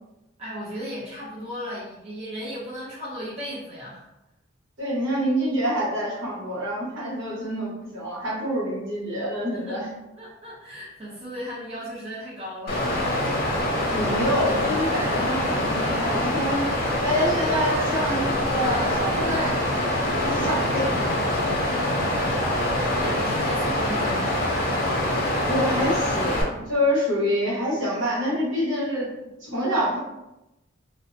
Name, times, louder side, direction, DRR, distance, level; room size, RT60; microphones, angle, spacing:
voice 1, 0.4-4.1 9.5-9.8 10.2-12.8 21.9-24.6, equal, 30° right, -8 dB, 0.5 m, -36 dB
voice 2, 4.8-9.9 13.9-16.7 17.0-21.5 25.5-29.1 29.4-30.0, equal, 70° right, -7 dB, 1.1 m, -27 dB
Water, 12.7-26.4, left 1 dB, 45° left, 0.5 m, -24 dB
2.6 x 2.0 x 2.5 m, 0.95 s
head